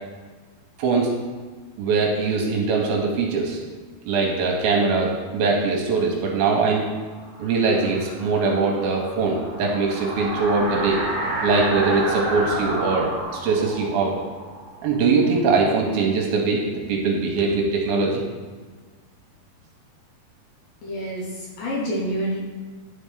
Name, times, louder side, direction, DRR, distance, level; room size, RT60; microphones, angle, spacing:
voice 1, 0.8-1.1 1.8-3.6 4.1-6.9 7.4-11.0 11.4-14.2 14.8-16.6 16.9-18.2, right 4 dB, 80° right, 0 dB, 2.5 m, -22 dB
sound 1, 7.0-15.7, right 1 dB, 30° left, 2.0 m, -30 dB
voice 2, 20.8-22.4, equal, 70° left, -4 dB, 2.3 m, -28 dB
11.0 x 4.2 x 3.5 m, 1.4 s
omnidirectional pair, 4.7 m